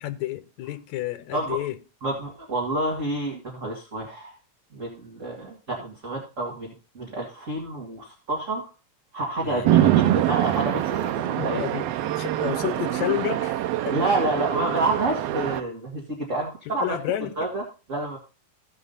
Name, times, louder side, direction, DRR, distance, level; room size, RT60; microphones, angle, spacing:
voice 1, 0.0-1.8 9.4-9.7 11.3-13.6 13.9-14.0 16.7-17.3, left 13 dB, 75° left, 2.0 m, -30 dB
voice 2, 1.3-1.6 2.0-4.3 4.7-8.7 9.1-11.6 13.9-16.9 17.4-17.6 17.9-18.2, right 2 dB, 25° right, 2.1 m, -29 dB
Chatter / Traffic noise roadway noise / Train, 9.6-15.6, right 13 dB, 85° right, 1.4 m, -24 dB
15.5 x 5.5 x 4.0 m
omnidirectional pair, 3.6 m